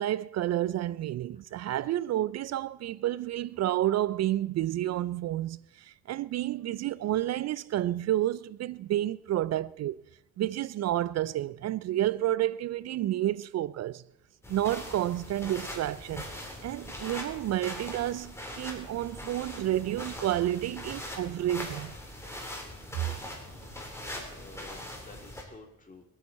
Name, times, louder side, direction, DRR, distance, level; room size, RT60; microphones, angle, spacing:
voice 1, 0.0-10.0 10.4-14.0 14.5-16.3 16.6-21.9, right 13 dB, 60° right, 0.4 m, -30 dB
sound 1, 14.4-25.4, left 1 dB, 10° left, 3.8 m, -41 dB
voice 2, 24.0-26.0, left 3 dB, 25° left, 2.8 m, -51 dB
26.0 x 9.2 x 4.2 m
cardioid pair, 90°, 30 cm